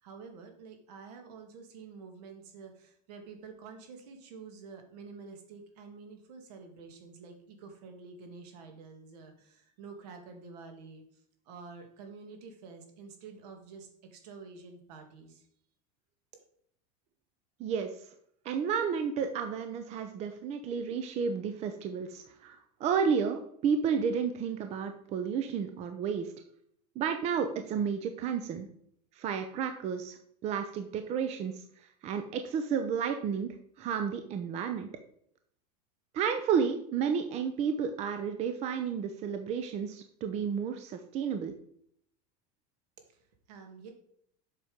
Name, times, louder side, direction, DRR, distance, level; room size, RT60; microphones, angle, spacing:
voice 1, 0.0-15.5 43.1-43.9, right 4 dB, 70° right, 5 dB, 2.4 m, -49 dB
voice 2, 17.6-18.1 18.4-26.3 27.0-28.7 29.2-31.6 32.0-34.9 36.1-41.5, right 6 dB, 30° right, 7 dB, 0.7 m, -32 dB
7.8 x 6.0 x 5.2 m, 0.66 s
supercardioid pair, 155°, 21 cm